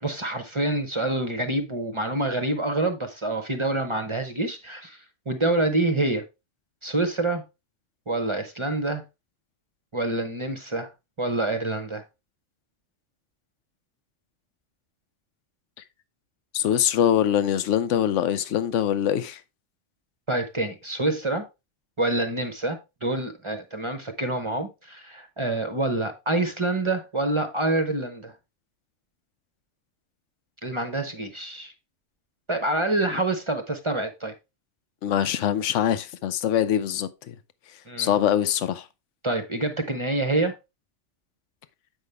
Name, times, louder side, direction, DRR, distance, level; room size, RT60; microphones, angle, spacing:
voice 1, 0.0-6.2 6.8-7.4 8.1-9.0 9.9-10.9 11.2-12.0 20.3-21.4 22.0-28.3 30.6-31.7 32.5-34.3 37.9-38.1 39.2-40.5, right 2 dB, 30° right, 0.7 m, -27 dB
voice 2, 16.5-19.4 35.0-37.3 38.0-38.8, left 10 dB, 80° left, 1.0 m, -23 dB
8.1 x 5.4 x 3.3 m
omnidirectional pair, 1.3 m